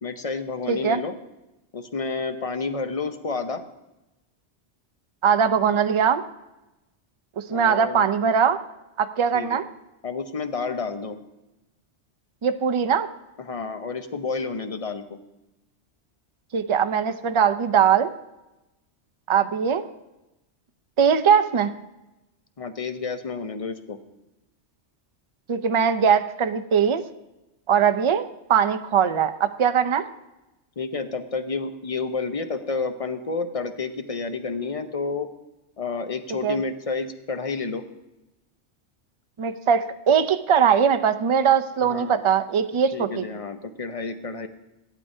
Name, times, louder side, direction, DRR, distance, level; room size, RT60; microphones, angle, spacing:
voice 1, 0.0-1.2 1.7-3.6 7.5-8.1 9.3-9.6 10.0-11.2 13.4-15.2 22.6-24.0 30.8-35.3 35.8-37.8 41.8-42.2 42.9-44.5, left 4 dB, 35° left, 8 dB, 0.8 m, -30 dB
voice 2, 0.7-1.0 5.2-6.2 7.5-8.6 9.0-9.7 12.4-13.1 16.5-18.1 19.3-19.8 21.0-21.7 25.5-27.0 27.7-28.2 28.5-30.0 36.4-36.6 39.4-43.2, right 7 dB, 40° right, 10 dB, 0.5 m, -21 dB
16.5 x 12.0 x 2.7 m, 0.98 s
omnidirectional pair, 1.2 m